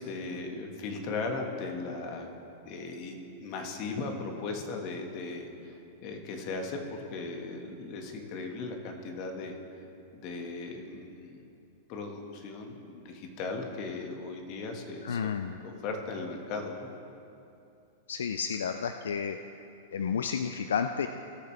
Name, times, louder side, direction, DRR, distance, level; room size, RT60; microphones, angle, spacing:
voice 1, 0.0-2.3 2.6-9.5 10.1-11.5 11.9-15.3 15.6-16.9, left 3 dB, 45° left, 3 dB, 1.7 m, -37 dB
voice 2, 15.0-15.6 18.1-19.4 19.9-21.1, left 7 dB, 80° left, 8 dB, 0.4 m, -31 dB
18.5 x 6.9 x 3.4 m, 2.7 s
hypercardioid pair, 110°, 0 cm